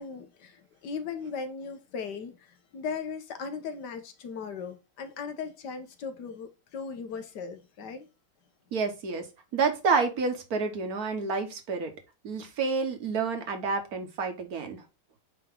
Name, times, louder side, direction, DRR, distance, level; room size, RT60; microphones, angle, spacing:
voice 1, 0.0-8.1, left 5 dB, 80° left, 1.5 m, -38 dB
voice 2, 8.7-9.3 9.5-11.9 12.2-14.8, right 4 dB, 60° right, 1.7 m, -29 dB
9.3 x 3.1 x 3.7 m
omnidirectional pair, 1.8 m